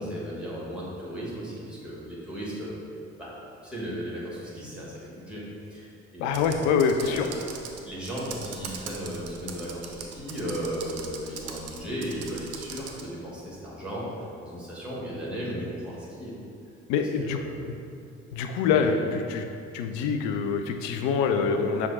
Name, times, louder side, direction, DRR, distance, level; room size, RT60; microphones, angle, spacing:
voice 1, 0.0-2.7 3.2-3.3 3.6-6.7 7.0-7.4 7.8-14.1 14.4-16.3 17.0-17.7 18.7-19.0, equal, 5° right, -7 dB, 1.5 m, -36 dB
voice 2, 6.2-7.3 16.9-17.4 17.7-17.8 18.3-19.4 19.7-21.9, left 6 dB, 55° left, 6 dB, 0.5 m, -25 dB
Computer keyboard, 6.3-13.1, right 6 dB, 45° right, 0.5 m, -41 dB
5.8 x 2.3 x 3.6 m, 2.4 s
figure-of-eight pair, 45°, 35 cm